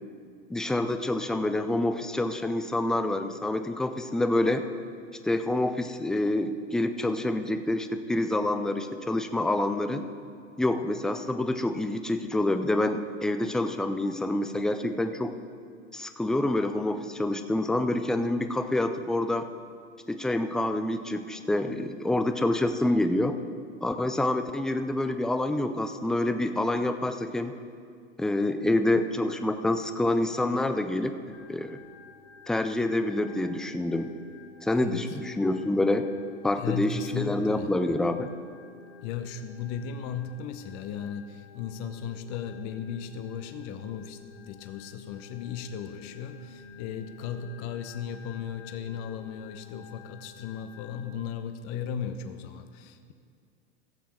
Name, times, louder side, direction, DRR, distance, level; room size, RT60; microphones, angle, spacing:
voice 1, 0.5-4.6 5.2-10.0 10.6-15.3 15.9-19.5 20.1-23.4 23.8-27.5 28.2-31.8 32.5-34.1 34.6-36.1 36.4-38.3, left 1 dB, ahead, 8 dB, 0.3 m, -27 dB
Organ, 31.3-51.0, left 5 dB, 80° left, 1.5 m, -51 dB
voice 2, 36.6-37.7 39.0-44.2 44.5-53.1, left 7 dB, 50° left, 9 dB, 1.0 m, -36 dB
16.5 x 7.3 x 4.5 m, 2.2 s
hypercardioid pair, 105°, 36 cm